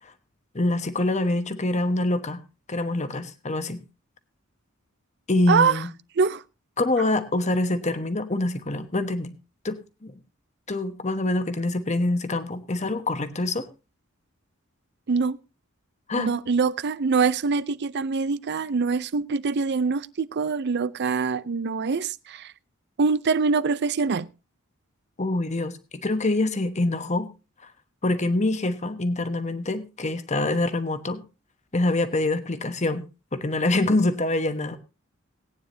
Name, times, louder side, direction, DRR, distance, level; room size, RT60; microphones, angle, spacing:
voice 1, 0.5-2.4 2.7-3.8 5.3-5.9 6.8-9.3 9.6-10.2 10.7-13.7 16.1-16.3 25.2-27.3 28.0-31.2 31.7-33.0 33.3-34.8, left 2 dB, 35° left, 1.1 m, -25 dB
voice 2, 5.5-5.8 6.2-6.4 15.1-15.4 16.2-22.5 23.0-24.3, right 5 dB, 55° right, 0.5 m, -24 dB
19.0 x 9.6 x 2.7 m
head